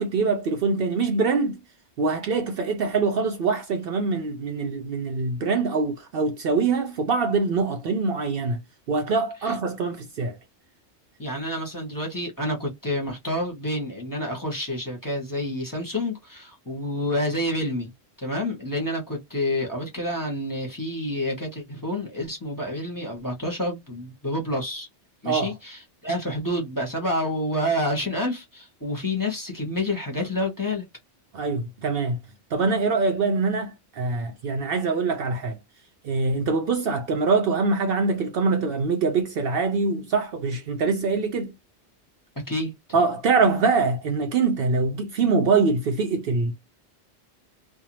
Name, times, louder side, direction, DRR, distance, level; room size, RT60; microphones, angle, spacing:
voice 1, 0.0-1.6 2.0-8.6 8.9-10.4 25.2-25.5 31.3-32.2 32.5-35.6 36.0-41.5 42.9-46.5, right 4 dB, 65° right, 0.7 m, -24 dB
voice 2, 11.2-17.9 18.2-24.9 25.2-30.9 42.5-42.7, left 1 dB, 20° left, 0.9 m, -28 dB
2.6 x 2.1 x 2.9 m
omnidirectional pair, 1.2 m